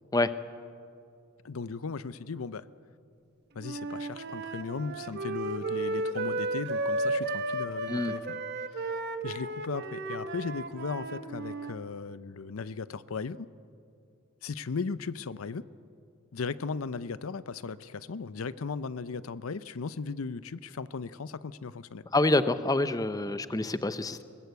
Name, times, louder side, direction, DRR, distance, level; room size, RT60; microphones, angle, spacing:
voice 1, 1.4-2.7 3.5-8.4 9.2-13.5 14.4-15.7 16.3-22.1, left 4 dB, 80° left, 16 dB, 0.6 m, -37 dB
Wind instrument woodwind instrument, 3.6-11.7, right 2 dB, 50° right, 1.1 m, -34 dB
voice 2, 22.1-24.2, left 2 dB, 15° left, 12 dB, 0.6 m, -26 dB
21.0 x 19.5 x 8.2 m, 2.4 s
head